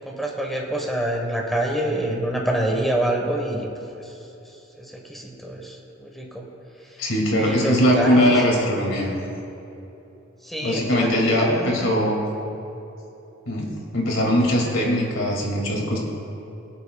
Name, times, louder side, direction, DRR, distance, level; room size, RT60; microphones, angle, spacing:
voice 1, 0.0-3.7 3.9-4.2 4.4-6.5 6.8-8.4 10.4-11.9, right 1 dB, ahead, 0 dB, 1.3 m, -27 dB
voice 2, 7.0-9.1 10.6-12.2 13.5-16.0, equal, 80° left, -1 dB, 2.4 m, -21 dB
21.5 x 8.6 x 2.4 m, 2.9 s
head